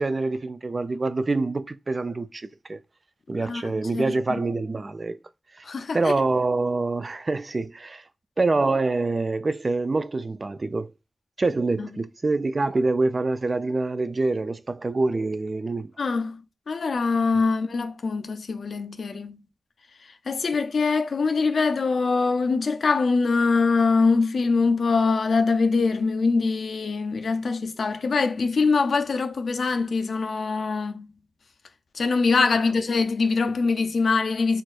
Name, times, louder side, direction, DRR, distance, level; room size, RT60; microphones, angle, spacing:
voice 1, 0.0-2.8 3.3-5.2 5.6-5.7 5.9-8.0 8.4-10.9 11.4-15.9, right 3 dB, 45° right, 0.3 m, -25 dB
voice 2, 3.5-4.1 5.6-6.0 11.8-11.9 16.0-16.4 16.7-19.4 20.3-31.1 31.9-34.6, left 4 dB, 80° left, 0.3 m, -23 dB
4.2 x 2.3 x 2.3 m
wide cardioid pair, 90°, 0 cm